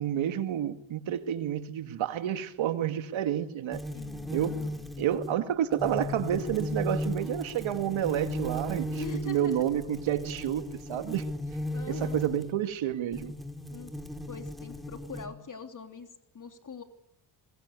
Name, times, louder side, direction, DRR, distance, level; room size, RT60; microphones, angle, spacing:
voice 1, 0.0-3.8 4.3-4.5 5.0-11.3 11.9-13.4, right 10 dB, 75° right, 2.1 m, -30 dB
sound 1, 3.7-12.6 13.1-15.3, equal, ahead, 4.3 m, -36 dB
voice 2, 3.9-4.9 8.9-9.7 11.7-12.3 13.7-13.9 14.3-16.8, left 5 dB, 40° left, 3.2 m, -43 dB
25.0 x 21.0 x 8.3 m
cardioid pair, 70°, 47 cm